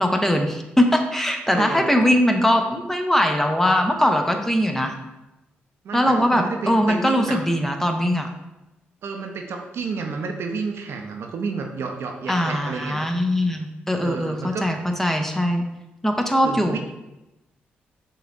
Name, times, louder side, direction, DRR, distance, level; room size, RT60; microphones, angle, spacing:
voice 1, 0.0-4.9 5.9-8.3 12.3-15.6 16.0-16.8, equal, 10° left, 4 dB, 0.7 m, -21 dB
voice 2, 1.5-2.0 5.8-7.4 9.0-13.0 14.0-14.7 16.4-16.8, right 4 dB, 70° right, 3 dB, 0.6 m, -30 dB
6.5 x 3.1 x 2.5 m, 0.98 s
supercardioid pair, 50°, 4 cm